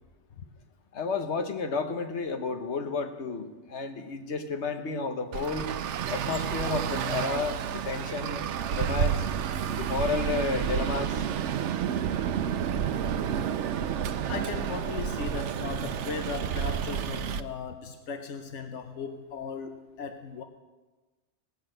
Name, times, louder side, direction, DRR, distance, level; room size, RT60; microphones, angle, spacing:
voice 1, 0.9-5.7 6.1-9.2 9.7-11.2, left 4 dB, 75° left, 6 dB, 1.4 m, -32 dB
Traffic noise roadway noise, 5.3-17.4, right 8 dB, 85° right, 0.9 m, -30 dB
voice 2, 14.3-20.4, left 5 dB, 90° left, 6 dB, 1.2 m, -37 dB
18.0 x 6.6 x 7.8 m, 1.2 s
omnidirectional pair, 1.2 m